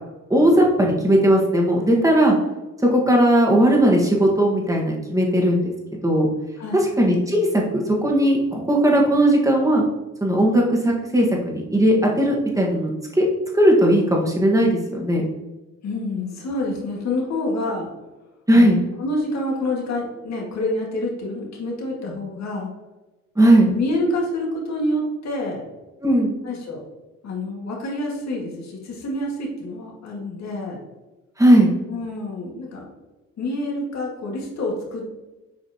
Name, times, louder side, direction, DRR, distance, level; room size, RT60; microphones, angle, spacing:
voice 1, 0.3-2.3 2.9-6.3 7.0-9.8 10.2-13.3 13.5-15.2 18.5-18.8 23.3-23.7 26.0-26.4 31.4-31.7, right 1 dB, 10° right, -1 dB, 1.6 m, -17 dB
voice 2, 6.6-6.9 15.8-17.9 18.5-22.7 23.6-25.6 26.4-26.8 27.2-30.8 31.9-32.9 33.4-35.1, left 1 dB, 65° left, -1 dB, 1.9 m, -27 dB
7.3 x 4.7 x 2.9 m, 1.1 s
cardioid pair, 90°, 30 cm